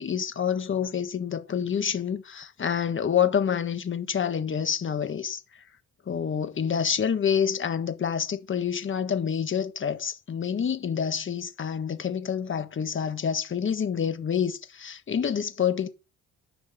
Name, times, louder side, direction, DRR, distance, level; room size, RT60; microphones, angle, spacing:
voice 1, 0.0-5.4 6.1-15.9, left 7 dB, 40° left, 1.5 m, -27 dB
11.0 x 6.0 x 7.7 m
cardioid pair, 90°, 30 cm